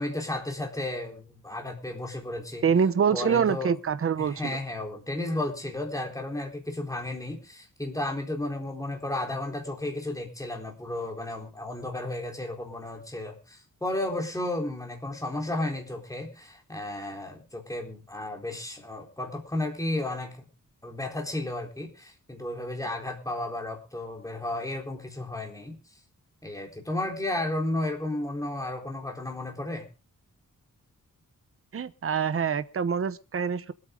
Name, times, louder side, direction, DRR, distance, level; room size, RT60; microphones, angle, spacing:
voice 1, 0.0-2.6 3.1-3.7 4.2-20.5 20.8-25.8 26.4-29.9, left 1 dB, 10° left, 2 dB, 4.1 m, -33 dB
voice 2, 2.6-4.6 31.7-33.7, right 7 dB, 40° right, 14 dB, 0.9 m, -25 dB
25.5 x 9.0 x 3.8 m, 0.34 s
wide cardioid pair, 155°, 33 cm